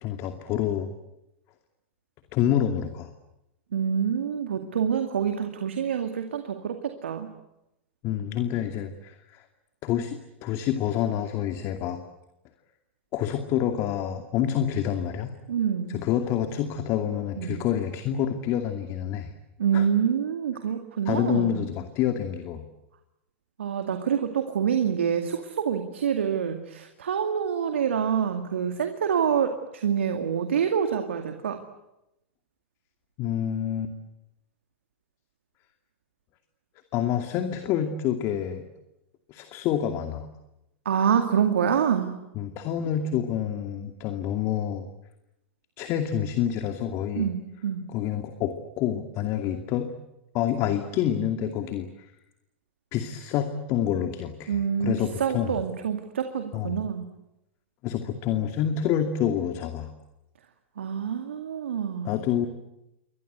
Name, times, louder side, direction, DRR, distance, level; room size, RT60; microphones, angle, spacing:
voice 1, 0.0-0.9 2.3-3.1 8.0-9.4 9.8-12.0 13.1-15.3 15.9-19.3 19.7-19.9 21.1-22.6 33.2-33.9 36.9-38.6 39.3-40.3 42.3-44.8 45.8-47.3 47.9-49.9 50.3-52.1 52.9-55.6 56.5-56.8 57.8-59.9 62.0-62.5, left 10 dB, 45° left, 7 dB, 2.5 m, -27 dB
voice 2, 3.7-7.3 15.5-16.0 17.4-17.6 19.6-21.6 23.6-31.6 40.9-42.2 47.2-47.8 54.5-54.9 55.2-57.1 60.8-62.1, right 7 dB, 75° right, 6 dB, 2.3 m, -26 dB
29.0 x 24.0 x 8.2 m, 0.90 s
hypercardioid pair, 100°, 7 cm